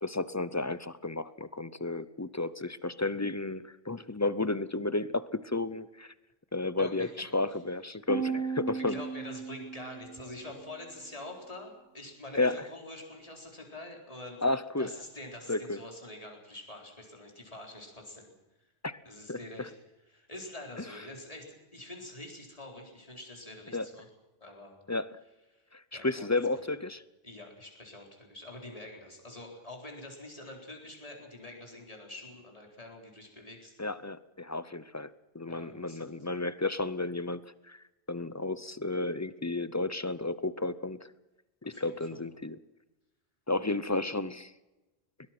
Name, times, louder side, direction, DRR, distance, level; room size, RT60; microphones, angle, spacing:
voice 1, 0.0-6.1 6.5-9.0 12.3-12.6 14.4-14.9 15.5-15.8 18.8-19.0 19.3-19.7 23.7-23.9 24.9-25.2 25.7-27.0 33.8-41.1 41.6-42.6 43.5-44.5, left 2 dB, 20° left, 16 dB, 0.6 m, -32 dB
voice 2, 6.8-7.1 8.8-14.4 14.8-18.3 18.6-18.7 19.0-19.7 20.1-24.1 24.4-24.8 25.5-25.7 25.9-26.6 27.2-33.8 35.5-36.1 41.6-42.2, left 1 dB, 35° left, 1 dB, 4.3 m, -46 dB
sound 1, 8.1-10.5, right 5 dB, 70° right, 2.0 m, -35 dB
21.5 x 20.0 x 6.0 m, 1.1 s
omnidirectional pair, 1.0 m